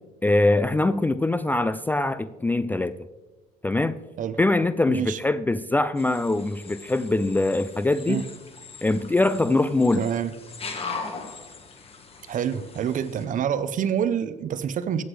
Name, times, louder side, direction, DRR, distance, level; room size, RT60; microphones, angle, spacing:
voice 1, 0.2-3.0 3.6-4.0 4.4-8.2 8.8-10.0, left 2 dB, 10° left, 13 dB, 0.3 m, -23 dB
voice 2, 4.9-5.2 8.1-8.2 10.0-10.3 12.3-15.0, right 8 dB, 50° right, 13 dB, 0.7 m, -27 dB
sound 1, 6.0-13.2, left 4 dB, 35° left, 1.5 m, -40 dB
15.0 x 8.1 x 3.3 m, 1.1 s
cardioid pair, 110°, 17 cm